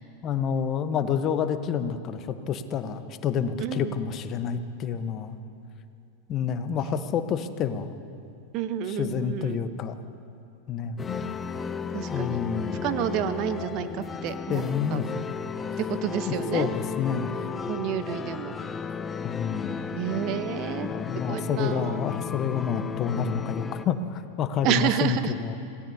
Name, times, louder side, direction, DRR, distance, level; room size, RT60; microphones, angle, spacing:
voice 1, 0.2-5.4 6.3-7.9 8.9-10.0 10.7-11.2 12.1-12.8 14.5-15.1 16.3-17.5 19.2-19.8 20.8-25.6, left 7 dB, 40° left, 10 dB, 1.0 m, -29 dB
voice 2, 3.6-4.0 8.5-9.6 11.9-12.4 12.8-14.6 14.9-15.0 15.8-16.7 17.7-18.5 19.9-20.9 21.3-22.0 24.6-25.3, right 10 dB, 50° right, 10 dB, 0.9 m, -29 dB
sound 1, 11.0-23.9, left 6 dB, 20° left, 0.7 m, -34 dB
26.5 x 18.5 x 2.8 m, 2.8 s
hypercardioid pair, 95°, 0 cm